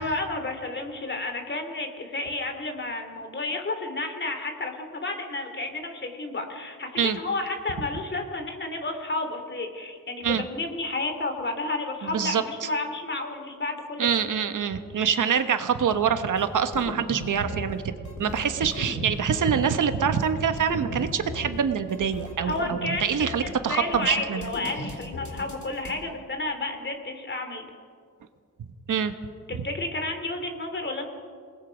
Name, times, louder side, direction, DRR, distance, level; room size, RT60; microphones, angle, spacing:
voice 1, 0.0-14.2 22.4-27.7 29.5-31.0, left 2 dB, 35° left, 5 dB, 2.9 m, -31 dB
voice 2, 12.0-12.7 14.0-17.9 18.2-24.4 28.9-29.1, right 7 dB, 70° right, 9 dB, 1.4 m, -25 dB
sound 1, 16.4-16.5 16.7-17.8 18.0-19.7 20.1-20.3 20.6-21.6 21.9-23.5 23.9-24.1 24.4-25.9, left 2 dB, 60° left, 3.5 m, -37 dB
27.5 x 20.0 x 5.2 m, 2.1 s
wide cardioid pair, 120°, 33 cm